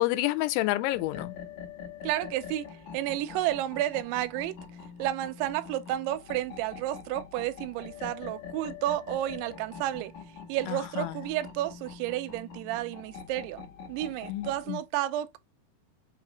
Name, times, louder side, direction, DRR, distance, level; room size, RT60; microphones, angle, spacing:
voice 1, 0.0-1.4 10.7-11.2 14.3-14.8, left 17 dB, 85° left, 2.6 m, -29 dB
sound 1, 0.9-14.6, left 6 dB, 65° left, 2.0 m, -44 dB
voice 2, 2.0-2.7 2.9-4.5 5.0-10.1 10.5-13.6 13.9-15.4, right 13 dB, 85° right, 2.6 m, -31 dB
7.1 x 2.4 x 2.9 m
omnidirectional pair, 4.6 m